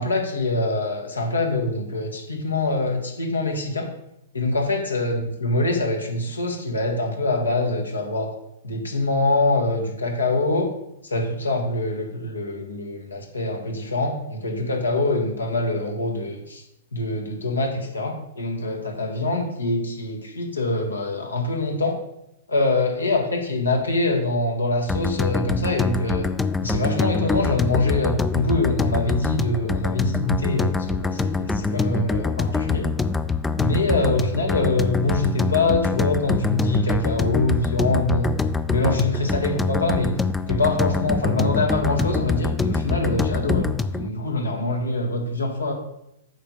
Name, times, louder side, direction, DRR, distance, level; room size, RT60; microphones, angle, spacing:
voice 1, 0.0-3.9 4.3-8.3 8.6-10.7 11.1-16.6 16.9-22.0 22.5-26.3 26.6-32.9 33.6-38.3 38.7-40.1 40.5-45.7, left 2 dB, 85° left, 2 dB, 1.5 m, -24 dB
sound 1, 24.9-44.1, left 4 dB, 10° left, 0.4 m, -25 dB
8.5 x 5.0 x 4.1 m, 0.82 s
figure-of-eight pair, 105°, 0 cm